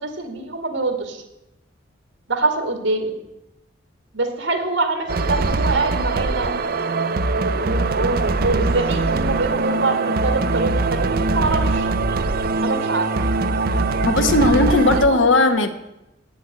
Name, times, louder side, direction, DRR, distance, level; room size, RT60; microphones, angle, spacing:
voice 1, 0.0-1.2 2.3-3.2 4.1-6.6 7.4-11.0 11.3-11.9 12.6-13.1 14.9-15.3, right 3 dB, 85° right, 6 dB, 2.1 m, -24 dB
sound 1, 5.1-15.1, right 3 dB, 50° right, 0.6 m, -22 dB
voice 2, 14.0-15.7, left 2 dB, 80° left, 8 dB, 1.1 m, -17 dB
8.8 x 7.7 x 8.4 m, 0.90 s
head